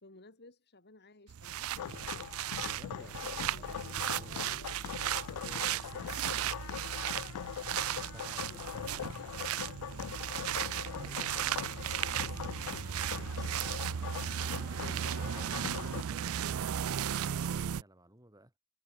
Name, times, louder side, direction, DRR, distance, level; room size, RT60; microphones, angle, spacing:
voice 1, 0.0-2.1 2.9-4.8 5.2-5.5 8.2-9.3 14.8-16.3, left 2 dB, 50° left, 3.1 m, -58 dB
sound 1, 1.3-17.8, right 10 dB, 70° right, 0.4 m, -36 dB
sound 2, 1.8-16.0, left 9 dB, 85° left, 0.3 m, -42 dB
voice 2, 2.6-4.9 5.3-6.7 7.5-9.1 9.8-15.7 16.1-18.5, right 1 dB, 15° right, 4.0 m, -58 dB
head